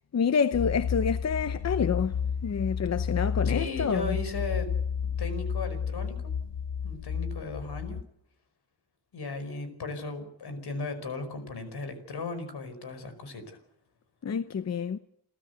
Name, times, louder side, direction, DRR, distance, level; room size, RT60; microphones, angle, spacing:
voice 1, 0.1-2.1 2.4-4.2 14.2-15.0, left 6 dB, 40° left, 0.8 m, -28 dB
sound 1, 0.5-8.0, left 7 dB, 90° left, 1.0 m, -31 dB
voice 2, 3.4-4.7 5.2-6.2 6.8-8.0 9.1-13.6, left 3 dB, 70° left, 5.1 m, -36 dB
29.5 x 13.5 x 8.1 m
wide cardioid pair, 145°, 40 cm